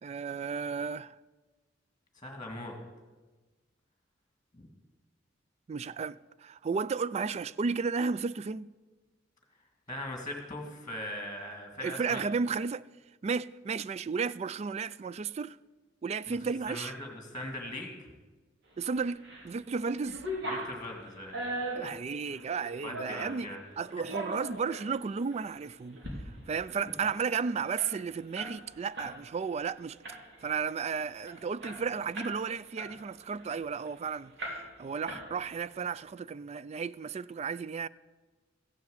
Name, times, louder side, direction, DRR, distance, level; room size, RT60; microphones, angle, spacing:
voice 1, 0.0-1.1 5.7-8.7 11.8-12.8 13.2-15.6 16.0-16.9 18.8-20.2 21.8-26.0 26.5-30.0 30.4-37.9, right 5 dB, 35° right, 0.3 m, -33 dB
voice 2, 2.2-2.7 4.5-4.7 9.9-12.2 16.3-16.4 16.7-18.0 20.4-21.3 22.8-23.6, left 1 dB, 20° left, 2.0 m, -40 dB
sound 1, 18.9-19.5 19.8-23.4 23.9-24.9 25.3-25.4 25.8-26.2 26.5-26.6 26.8-29.2 29.5-29.7 30.0-30.5 30.9-31.0 31.3-32.4 32.8-33.9 34.4-34.8 35.1-35.7, right 1 dB, 65° right, 3.1 m, -39 dB
15.0 x 7.3 x 7.9 m
head